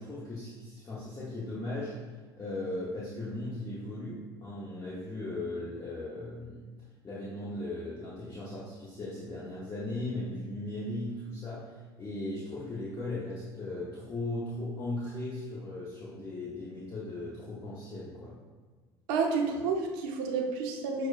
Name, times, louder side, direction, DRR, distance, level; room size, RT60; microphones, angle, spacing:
voice 1, 0.0-2.1 2.4-6.6 7.0-18.4, left 2 dB, 30° left, -7 dB, 0.8 m, -37 dB
voice 2, 19.1-21.1, right 4 dB, 70° right, 2 dB, 0.6 m, -30 dB
6.0 x 2.1 x 2.4 m, 1.4 s
hypercardioid pair, 65°, 13 cm